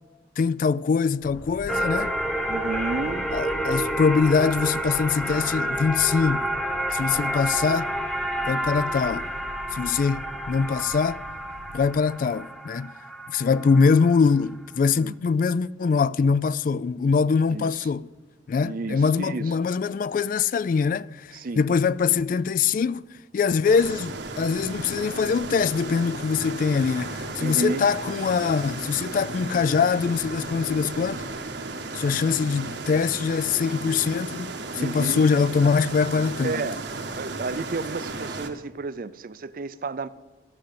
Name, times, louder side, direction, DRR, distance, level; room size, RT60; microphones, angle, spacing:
voice 1, 0.4-2.1 3.3-6.5 6.9-7.9 8.5-9.3 9.7-11.2 11.7-12.9 13.3-18.1 18.5-23.1 23.3-31.2 31.9-34.5 34.8-36.6, left 5 dB, 50° left, 0.3 m, -23 dB
sound 1, 1.2-11.9, left 1 dB, 75° left, 1.2 m, -42 dB
sound 2, 1.7-14.3, right 1 dB, 5° left, 1.0 m, -29 dB
voice 2, 2.5-3.3 15.0-15.2 17.5-17.9 18.6-19.5 21.3-21.7 27.4-27.9 34.8-35.3 36.4-36.9 37.2-40.1, right 3 dB, 50° right, 0.5 m, -32 dB
sound 3, 23.6-38.5, right 3 dB, 75° right, 1.2 m, -35 dB
14.5 x 6.3 x 8.5 m
head